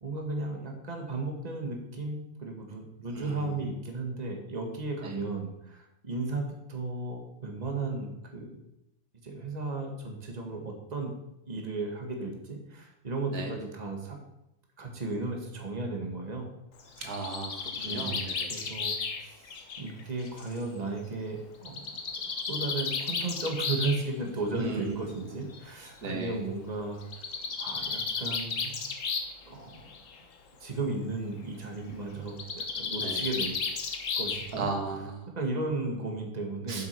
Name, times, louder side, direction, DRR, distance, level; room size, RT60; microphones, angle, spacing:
voice 1, 0.0-8.6 9.2-11.1 11.5-14.2 14.8-16.5 17.8-19.0 19.2-21.9 22.5-27.3 27.6-28.8 29.5-30.3 30.6-33.6 34.2-34.7 35.4-36.9, right 3 dB, 30° right, 2 dB, 1.7 m, -35 dB
voice 2, 3.1-3.7 5.0-5.2 13.3-13.5 17.0-18.7 24.5-25.4 26.0-26.4 33.0-33.2 34.5-35.3 36.7-36.9, right 3 dB, 90° right, 3 dB, 2.1 m, -36 dB
Bird, 16.8-20.6 21.7-24.0 25.1-25.2 25.5-25.6 25.9-26.0 27.0-29.4 29.7-30.2 32.3-34.7, left 5 dB, 60° left, 1.4 m, -33 dB
7.6 x 7.5 x 6.6 m, 0.87 s
omnidirectional pair, 1.6 m